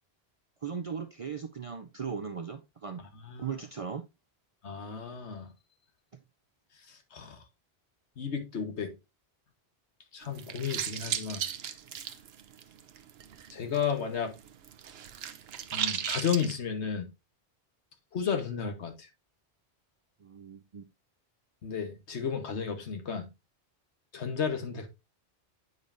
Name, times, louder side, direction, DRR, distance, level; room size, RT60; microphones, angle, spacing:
voice 1, 0.6-3.0 3.4-4.0 20.2-20.8, right 6 dB, 50° right, 0.4 m, -38 dB
voice 2, 3.2-3.6 4.6-5.5 6.9-7.4 8.2-8.9 10.1-11.4 13.5-14.3 15.7-17.1 18.1-19.1 21.6-23.3 24.1-24.9, left 7 dB, 80° left, 1.4 m, -33 dB
sound 1, 10.2-13.9 14.2-16.6, right 9 dB, 65° right, 0.8 m, -36 dB
8.1 x 5.2 x 2.6 m
omnidirectional pair, 1.1 m